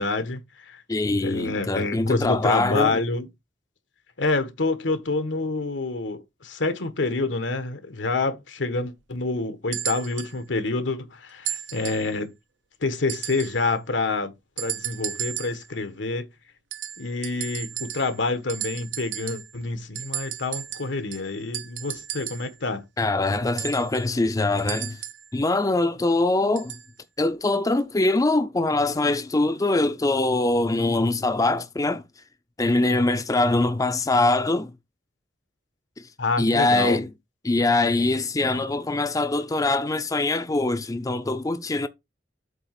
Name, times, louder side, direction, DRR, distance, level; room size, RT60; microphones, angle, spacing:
voice 1, 0.0-0.8 1.2-3.3 4.2-12.3 12.8-16.2 17.0-22.8 36.2-37.0, left 3 dB, 85° left, 1.3 m, -27 dB
voice 2, 0.9-3.0 23.0-25.0 25.3-26.8 27.2-32.0 32.6-34.7 36.0-36.1 36.4-37.1 37.4-41.9, left 2 dB, 20° left, 0.5 m, -23 dB
sound 1, 9.7-10.4 11.5-12.1 13.1-13.6 14.6-15.7 16.7-18.2 18.5-19.6 20.0-22.5 23.6-25.3 26.6-26.9 27.8-27.9, right 11 dB, 80° right, 0.8 m, -34 dB
8.0 x 2.9 x 5.8 m
head